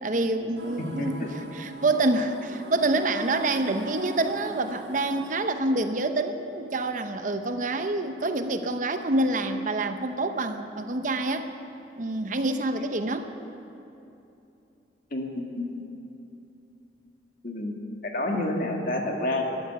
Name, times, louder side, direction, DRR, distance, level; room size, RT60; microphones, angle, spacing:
voice 1, 0.0-11.5 12.0-13.3, right 2 dB, 45° right, 8 dB, 0.7 m, -27 dB
sound 1, 0.5-5.4, right 1 dB, 85° right, 3.9 m, -41 dB
voice 2, 0.8-1.3 15.1-15.9 17.4-17.7 18.0-19.4, left 1 dB, 50° left, 1 dB, 1.9 m, -29 dB
13.5 x 12.5 x 8.0 m, 2.8 s
head